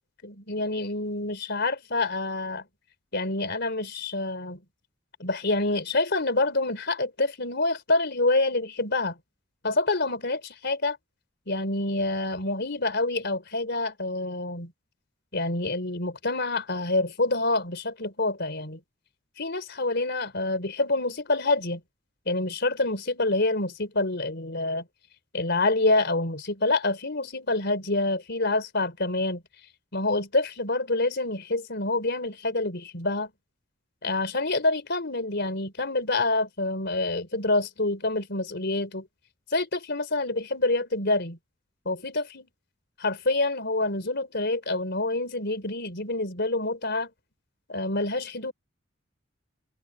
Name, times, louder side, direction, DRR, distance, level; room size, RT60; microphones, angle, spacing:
voice 1, 0.2-2.6 3.1-4.6 5.2-9.2 9.6-11.0 11.5-14.7 15.3-18.8 19.4-21.8 22.3-24.8 25.3-29.4 29.9-33.3 34.0-39.1 39.5-41.4 41.9-42.5 43.0-47.1 47.7-48.5, left 2 dB, 55° left, 4.3 m, -27 dB
head